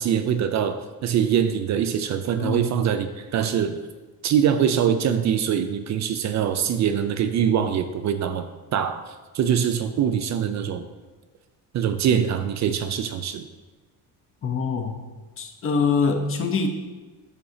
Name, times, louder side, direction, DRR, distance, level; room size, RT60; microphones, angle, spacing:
voice 1, 0.0-3.8 4.2-10.9 11.7-13.5, right 8 dB, 45° right, 9 dB, 0.4 m, -23 dB
voice 2, 2.4-2.7 14.4-15.0 15.4-16.7, left 5 dB, 35° left, 5 dB, 0.8 m, -24 dB
12.0 x 4.2 x 2.7 m, 1.3 s
cardioid pair, 140°, 38 cm